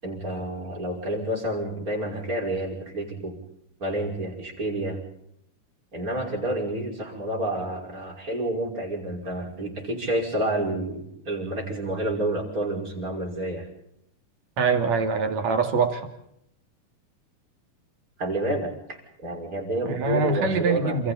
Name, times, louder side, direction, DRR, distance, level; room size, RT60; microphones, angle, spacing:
voice 1, 0.0-3.4 3.8-5.0 5.9-13.7 18.2-18.7 19.2-21.0, right 1 dB, 25° right, 0 dB, 5.9 m, -29 dB
voice 2, 14.6-16.1 19.9-21.1, right 4 dB, 60° right, 5 dB, 3.6 m, -24 dB
28.5 x 28.5 x 4.2 m, 0.75 s
omnidirectional pair, 3.7 m